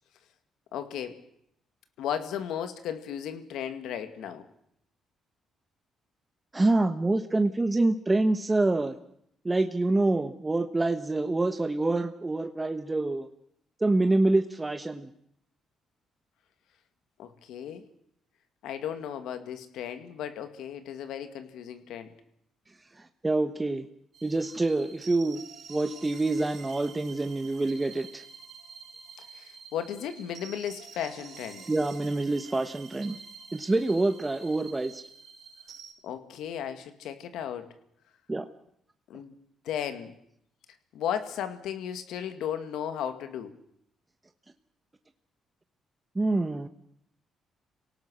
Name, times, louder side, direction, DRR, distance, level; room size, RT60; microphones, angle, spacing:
voice 1, 0.7-1.2 2.0-4.5 17.2-17.8 18.6-22.1 29.3-31.7 36.0-37.7 39.1-39.3 39.6-40.2 40.9-43.5, left 9 dB, 85° left, 9 dB, 2.1 m, -35 dB
voice 2, 6.5-9.0 9.4-13.3 13.8-15.1 23.0-23.9 24.2-25.4 25.7-28.2 31.7-33.2 33.5-35.0 38.3-38.4 46.1-46.7, right 2 dB, 20° right, 8 dB, 1.2 m, -26 dB
sound 1, 24.1-35.9, right 5 dB, 60° right, 5.9 m, -48 dB
26.5 x 18.0 x 6.4 m, 0.72 s
cardioid pair, 90°, 0 cm